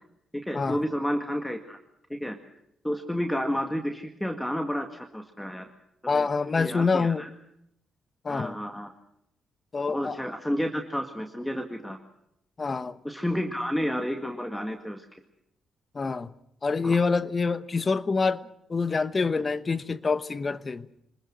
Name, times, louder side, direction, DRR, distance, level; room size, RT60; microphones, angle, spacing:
voice 1, 0.3-1.8 2.1-2.4 2.8-5.7 6.0-6.3 6.6-7.3 8.3-8.9 9.9-12.0 13.0-15.1 16.8-17.0, equal, 5° left, 2.0 m, -31 dB
voice 2, 6.1-7.2 8.2-8.6 9.7-10.2 12.6-13.0 15.9-16.3 16.6-18.4 18.7-20.9, left 4 dB, 35° left, 1.1 m, -26 dB
26.0 x 20.5 x 6.2 m
hypercardioid pair, 50°, 0 cm